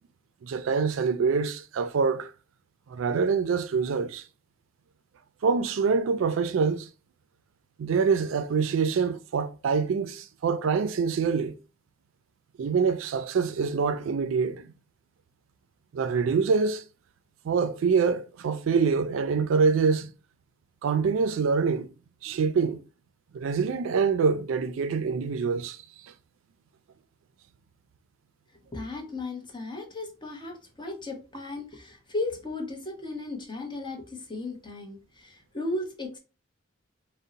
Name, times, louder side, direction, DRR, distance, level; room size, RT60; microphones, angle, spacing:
voice 1, 0.4-2.3 2.9-4.2 5.4-6.9 7.8-11.6 12.6-14.7 15.9-16.8 17.4-20.1 20.8-21.9 22.2-22.8 23.3-25.8, right 5 dB, 75° right, 0.3 m, -25 dB
voice 2, 28.7-36.2, left 2 dB, 25° left, 0.8 m, -35 dB
2.6 x 2.1 x 3.8 m
head